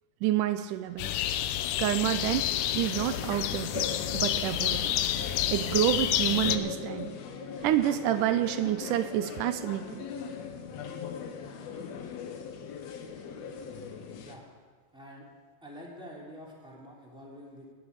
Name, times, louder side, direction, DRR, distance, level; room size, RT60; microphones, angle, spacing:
voice 1, 0.2-1.3 1.8-3.9 4.1-5.0 5.5-7.2 7.6-10.0, right 12 dB, 85° right, 11 dB, 2.1 m, -28 dB
sound 1, 1.0-6.6, left 12 dB, 85° left, 2.3 m, -29 dB
sound 2, 2.0-14.3, left 6 dB, 65° left, 2.1 m, -40 dB
Crying sobbing, 2.1-2.5 3.1-3.2 4.2-6.4 7.6-8.4 9.1-9.4, right 3 dB, 45° right, 2.5 m, -55 dB
voice 2, 14.2-14.5 14.9-15.3 15.6-17.7, equal, ahead, -4 dB, 2.9 m, -47 dB
19.5 x 7.1 x 8.2 m, 1.5 s
omnidirectional pair, 3.7 m